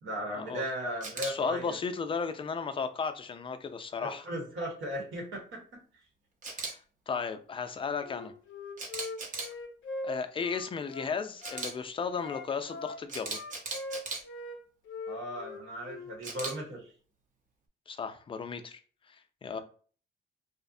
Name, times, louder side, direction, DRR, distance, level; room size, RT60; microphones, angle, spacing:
voice 1, 0.0-1.8 4.0-5.8 15.1-16.9 19.5-19.6, equal, 80° right, 1.1 m, -37 dB
Camera, 1.0-1.3 6.4-6.7 8.8-9.5 11.4-11.7 13.1-14.2 16.2-16.5, right 3 dB, 40° right, 0.7 m, -37 dB
voice 2, 1.2-4.3 6.5-6.8 7.1-8.3 10.0-13.4 17.9-18.8 19.1-19.6, left 5 dB, 25° left, 0.3 m, -35 dB
Wind instrument woodwind instrument, 8.0-11.7 12.1-14.6 14.9-16.2, left 2 dB, 75° left, 0.6 m, -41 dB
2.6 x 2.0 x 2.5 m
cardioid pair, 90°, 20 cm